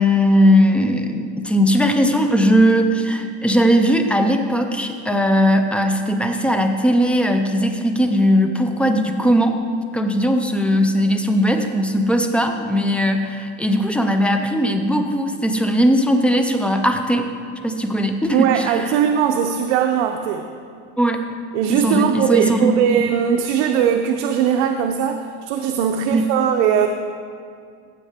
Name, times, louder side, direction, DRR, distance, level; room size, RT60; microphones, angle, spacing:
voice 1, 0.0-9.6 9.9-17.3 17.6-18.9 21.0-21.2 21.7-22.7 26.1-26.3, equal, 5° left, 5 dB, 0.3 m, -18 dB
voice 2, 18.3-20.5 21.5-26.9, right 8 dB, 80° right, 5 dB, 0.7 m, -19 dB
15.0 x 7.2 x 3.6 m, 2.3 s
cardioid pair, 145°, 34 cm